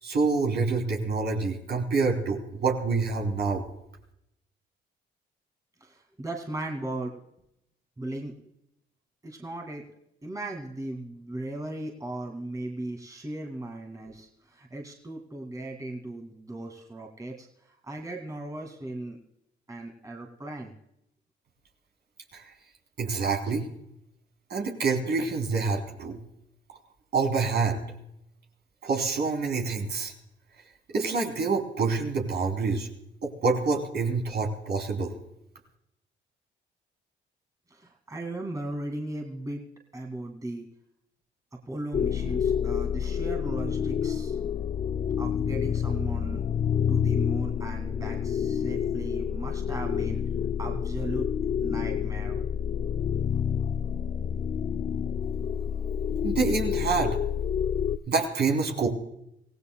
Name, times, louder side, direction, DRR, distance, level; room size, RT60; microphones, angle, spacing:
voice 1, 0.0-3.6 22.3-22.4 23.0-23.7 24.5-26.2 27.1-27.8 28.8-30.1 30.9-32.9 33.2-35.1 56.2-57.2 58.1-58.9, right 4 dB, 60° right, 1 dB, 3.3 m, -27 dB
voice 2, 5.8-7.1 8.0-8.3 9.2-9.8 10.2-17.5 17.9-19.2 19.7-20.7 37.7-39.7 39.9-40.7 41.7-44.4 45.2-46.5 46.9-50.2 50.6-51.3 51.6-52.4, right 1 dB, 15° right, 1 dB, 2.2 m, -37 dB
sound 1, 41.9-58.0, left 8 dB, 35° left, 0.4 m, -28 dB
25.5 x 16.5 x 2.3 m, 0.80 s
cardioid pair, 90°, 20 cm